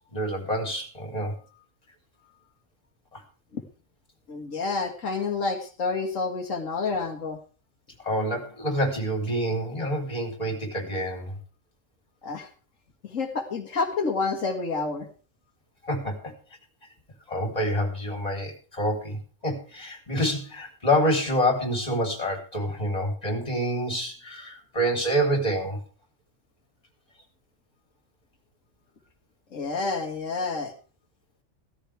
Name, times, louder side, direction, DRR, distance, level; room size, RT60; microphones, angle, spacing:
voice 1, 0.1-1.3 3.1-3.2 8.0-11.4 15.8-16.3 17.3-25.8, equal, 30° left, 2 dB, 3.7 m, -27 dB
voice 2, 4.3-7.4 12.2-12.5 13.0-15.1 29.5-30.7, left 4 dB, 90° left, 3 dB, 2.0 m, -29 dB
16.0 x 14.0 x 3.4 m, 0.36 s
omnidirectional pair, 1.3 m